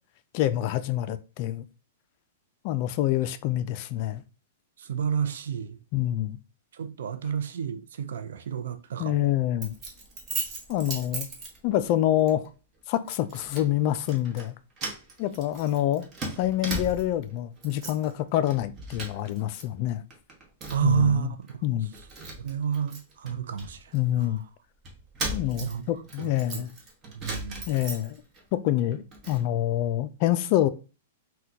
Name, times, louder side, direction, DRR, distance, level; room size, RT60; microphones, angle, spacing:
voice 1, 0.3-1.6 2.6-4.2 5.9-6.4 9.0-9.7 10.7-11.3 11.6-12.5 12.9-14.5 15.2-16.1 16.4-20.0 20.8-21.3 21.6-21.9 23.9-24.4 25.3-26.7 27.7-28.2 28.5-30.7, left 13 dB, 45° left, 0.3 m, -26 dB
voice 2, 4.8-5.8 6.7-9.3 20.7-21.4 22.4-24.3 25.6-25.8 26.2-26.7 27.1-27.6, right 7 dB, 75° right, 0.4 m, -30 dB
Keys jangling, 9.6-11.9 12.3-12.5 13.1-13.7 14.0-14.5 14.8-17.2 17.6-18.1 18.4-19.6 19.9-21.0 21.5-21.6 21.9-24.3 24.8-28.4 28.8-29.4, right 2 dB, 25° right, 0.9 m, -37 dB
3.8 x 2.2 x 2.8 m
hypercardioid pair, 135°, 0 cm